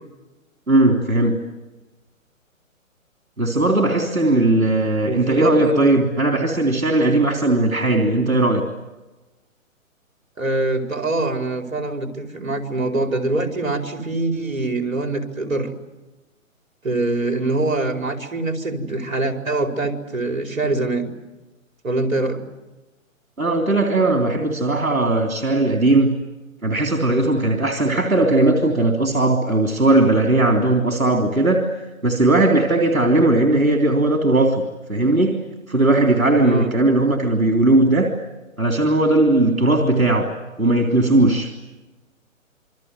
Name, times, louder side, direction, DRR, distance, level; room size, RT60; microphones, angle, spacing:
voice 1, 0.7-1.4 3.4-8.6 23.4-26.2 26.6-31.7 32.0-34.6 34.9-38.1 38.6-40.3 40.6-41.5, right 2 dB, 90° right, 3 dB, 3.3 m, -18 dB
voice 2, 5.0-5.9 10.4-15.7 16.8-21.1 21.8-22.4 36.4-36.8, right 2 dB, 75° right, 4 dB, 4.8 m, -24 dB
28.0 x 25.0 x 8.0 m, 1.1 s
figure-of-eight pair, 135°, 41 cm